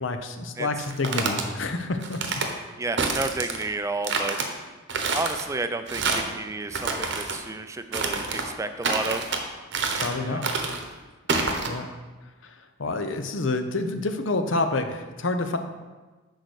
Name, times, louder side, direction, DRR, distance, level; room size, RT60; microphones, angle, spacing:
voice 1, 0.0-2.2 10.0-10.5 11.7-11.9 12.8-15.6, left 2 dB, 65° left, 7 dB, 0.7 m, -28 dB
sound 1, 0.8-1.4 2.0-2.5 3.0-3.7 4.0-4.5 4.9-5.4 5.9-6.3 6.7-7.4 7.9-8.5 8.8-9.4 9.7-10.2 10.4-10.8 11.3-11.7, right 4 dB, 55° right, 0.9 m, -27 dB
voice 2, 2.8-4.4 5.1-9.3 10.2-10.4, right 3 dB, 15° right, 9 dB, 0.4 m, -31 dB
6.5 x 4.8 x 6.3 m, 1.3 s
head